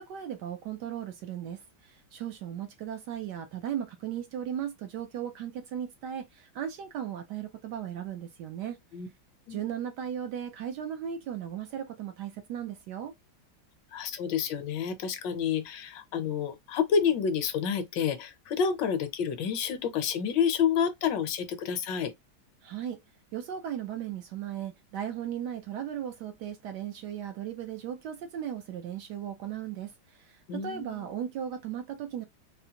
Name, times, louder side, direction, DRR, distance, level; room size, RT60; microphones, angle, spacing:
voice 1, 0.0-8.8 9.5-13.1 22.6-23.0 23.3-32.2, right 9 dB, 75° right, 1.0 m, -36 dB
voice 2, 13.9-22.1 30.5-31.1, left 7 dB, 75° left, 1.2 m, -29 dB
4.0 x 2.1 x 2.7 m
omnidirectional pair, 2.1 m